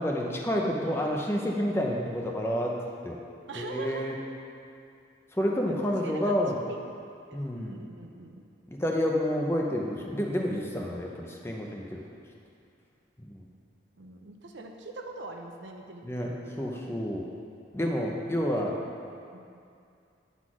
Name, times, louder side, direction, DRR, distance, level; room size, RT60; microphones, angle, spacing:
voice 1, 0.0-2.7 3.0-3.2 3.6-4.2 5.3-6.6 7.3-7.8 8.7-12.0 13.2-13.4 16.0-17.3 17.7-18.7, equal, 15° left, -1 dB, 0.6 m, -29 dB
voice 2, 3.5-4.2 5.7-6.4 6.7-6.8 7.6-8.4 14.0-16.8 18.4-18.9 19.3-19.4, right 3 dB, 75° right, 3 dB, 0.7 m, -43 dB
9.4 x 4.1 x 6.0 m, 2.5 s
head